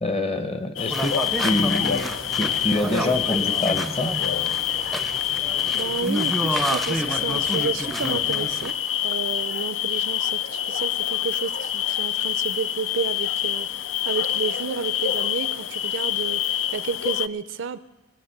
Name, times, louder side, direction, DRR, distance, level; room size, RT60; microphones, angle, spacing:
voice 1, 0.0-1.1 1.4-2.0 2.4-4.1, left 1 dB, 30° left, 9 dB, 0.9 m, -25 dB
sound 1, 0.8-17.3, left 11 dB, 70° left, 0.4 m, -26 dB
sound 2, 0.9-8.7, right 1 dB, ahead, 0.5 m, -30 dB
voice 2, 5.7-8.7 9.0-17.8, right 5 dB, 65° right, 15 dB, 0.5 m, -31 dB
21.5 x 7.3 x 6.6 m, 1.2 s
head